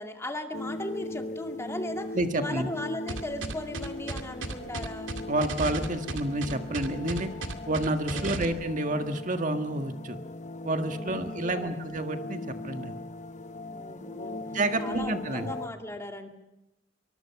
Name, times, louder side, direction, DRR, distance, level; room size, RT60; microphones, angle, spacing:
voice 1, 0.0-5.1 8.1-8.5 11.0-11.8 13.7-14.4 14.8-16.3, left 1 dB, 15° left, 4 dB, 2.1 m, -38 dB
sound 1, 0.5-15.7, left 2 dB, 40° left, 0.9 m, -39 dB
voice 2, 2.1-2.7 5.3-7.3 7.7-10.2 10.6-12.9 14.5-15.5, right 2 dB, 40° right, 7 dB, 1.7 m, -29 dB
sound 2, 3.1-8.4, right 2 dB, 80° right, 2.2 m, -34 dB
24.0 x 22.5 x 5.9 m, 0.96 s
head